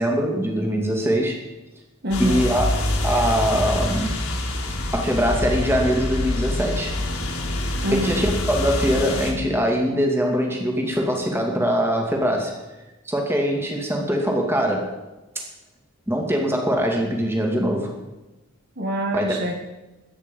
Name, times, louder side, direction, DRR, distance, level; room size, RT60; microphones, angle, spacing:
voice 1, 0.0-1.4 2.2-2.7 3.0-4.2 4.9-7.0 7.9-12.5 13.1-14.9 15.4-15.5 16.1-17.9 19.1-19.3, equal, 10° right, 1 dB, 2.5 m, -22 dB
voice 2, 2.0-2.5 7.8-8.2 18.8-19.5, equal, 45° right, 2 dB, 1.6 m, -25 dB
sound 1, 2.1-9.3, left 1 dB, 80° left, 4.5 m, -26 dB
23.0 x 9.6 x 5.4 m, 1.0 s
head